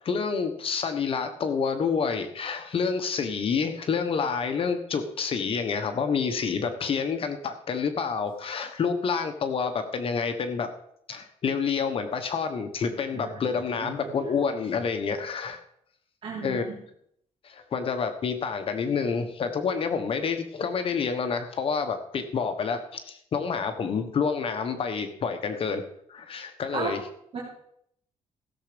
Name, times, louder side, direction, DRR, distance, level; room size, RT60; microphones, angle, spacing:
voice 1, 0.0-10.7 11.1-15.6 16.4-16.6 17.4-25.8 26.1-27.0, left 5 dB, 45° left, 7 dB, 1.3 m, -28 dB
voice 2, 13.1-13.4 13.8-14.1 16.2-16.7 26.7-27.0 27.3-27.4, right 4 dB, 50° right, -4 dB, 3.3 m, -34 dB
15.5 x 7.2 x 5.2 m, 0.70 s
cardioid pair, 115°, 13 cm